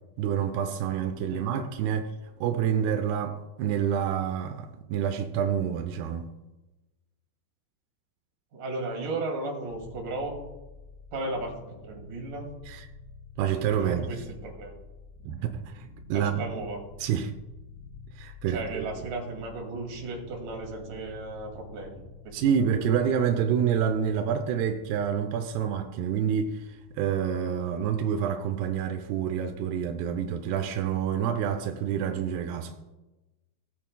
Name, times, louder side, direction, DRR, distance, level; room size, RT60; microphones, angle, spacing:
voice 1, 0.2-2.1 2.4-6.3 12.7-12.9 13.4-14.0 15.3-16.4 17.0-17.3 18.2-18.9 22.3-32.7, right 8 dB, 85° right, 2.3 m, -28 dB
voice 2, 1.3-1.7 8.5-10.3 11.1-11.5 11.8-12.5 13.8-14.8 16.1-16.8 18.5-22.4 22.6-22.7, right 2 dB, 50° right, 3.4 m, -35 dB
sound 1, 9.6-28.7, left 4 dB, 80° left, 3.8 m, -49 dB
19.0 x 8.4 x 2.2 m
omnidirectional pair, 5.3 m